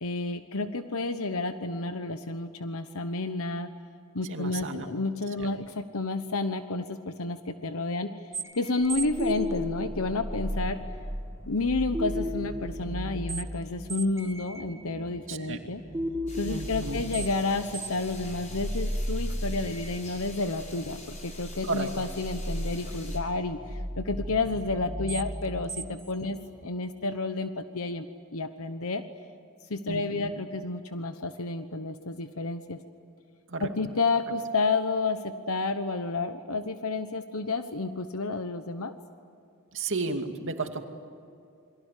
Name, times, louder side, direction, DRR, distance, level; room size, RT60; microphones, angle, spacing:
voice 1, 0.0-3.7 4.1-8.1 8.5-10.8 11.5-15.8 16.4-29.0 29.7-32.8 33.6-38.9, left 3 dB, 65° left, 9 dB, 1.1 m, -30 dB
voice 2, 4.2-4.9 5.4-5.5 15.3-15.6 16.5-17.0 21.6-21.9 29.9-30.3 33.5-33.7 39.7-40.8, right 3 dB, 60° right, 5 dB, 2.4 m, -33 dB
sound 1, 8.3-26.7, equal, 15° right, 1.3 m, -35 dB
sound 2, 16.3-23.2, left 2 dB, 35° left, 6.1 m, -47 dB
28.5 x 23.5 x 8.5 m, 2.5 s
head